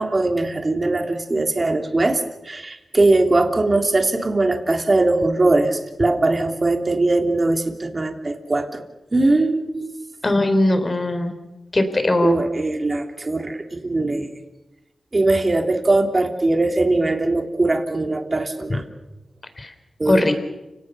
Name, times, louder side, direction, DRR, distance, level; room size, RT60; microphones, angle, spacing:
voice 1, 0.0-8.8 9.1-9.9 12.2-14.3 15.1-18.8 20.0-20.2, right 2 dB, 35° right, 5 dB, 3.2 m, -20 dB
voice 2, 10.2-11.3 11.7-12.4 18.7-18.8 19.6-19.7 20.1-20.3, left 1 dB, 35° left, 8 dB, 4.0 m, -19 dB
29.5 x 18.5 x 6.9 m, 1.0 s
cardioid pair, 70°, 0 cm